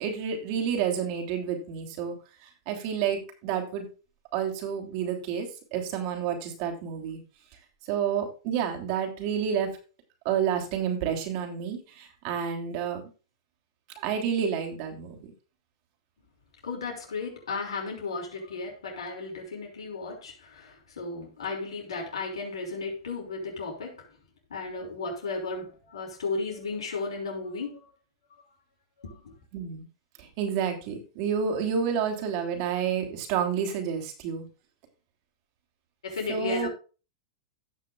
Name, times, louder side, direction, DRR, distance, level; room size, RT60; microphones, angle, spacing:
voice 1, 0.0-2.1 2.6-3.9 4.3-7.2 7.9-9.7 10.2-13.1 14.0-15.3 29.5-29.8 30.2-34.5 36.3-36.7, right 7 dB, 50° right, 3.4 m, -29 dB
voice 2, 16.6-24.1 24.5-27.8 29.0-29.3 36.0-36.7, left 3 dB, 85° left, 5.6 m, -34 dB
17.0 x 6.7 x 2.5 m
hypercardioid pair, 120°, 3 cm